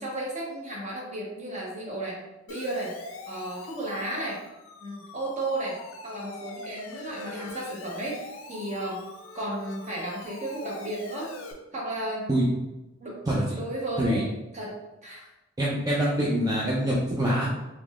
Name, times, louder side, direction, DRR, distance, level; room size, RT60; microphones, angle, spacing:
voice 1, 0.0-2.2 2.5-2.9 3.3-4.4 4.8-9.1 9.3-11.3 11.7-12.3 13.0-13.2 13.5-15.3, right 1 dB, 35° right, -3 dB, 0.9 m, -34 dB
Siren, 2.5-11.5, left 3 dB, 90° left, 0.5 m, -43 dB
voice 2, 15.6-17.4, right 1 dB, 20° right, -7 dB, 0.5 m, -24 dB
3.6 x 3.0 x 2.4 m, 0.98 s
head